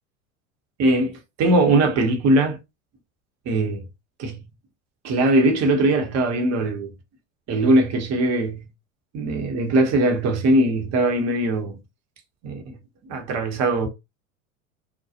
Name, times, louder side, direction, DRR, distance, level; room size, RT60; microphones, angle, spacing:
voice 1, 0.8-2.6 3.4-3.8 4.2-4.4 5.0-6.9 7.5-8.6 9.1-11.8 12.4-12.8 13.0-13.9, right 2 dB, 40° right, 1.0 m, -20 dB
2.3 x 2.3 x 2.7 m
hypercardioid pair, 90°, 43 cm